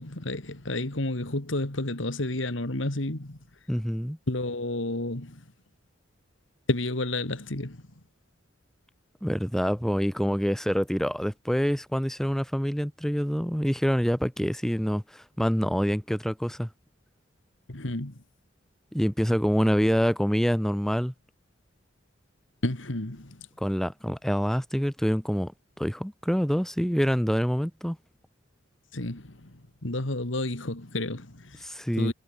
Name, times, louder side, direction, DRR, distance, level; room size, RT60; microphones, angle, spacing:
voice 1, 0.0-3.4 4.3-5.4 6.7-7.8 17.7-18.1 22.6-23.5 28.9-31.6 32.0-32.1, left 2 dB, 80° left, 2.6 m, -31 dB
voice 2, 3.7-4.2 9.2-16.7 18.9-21.1 23.6-25.5 25.8-28.0 31.6-32.1, equal, ahead, 1.6 m, -26 dB
head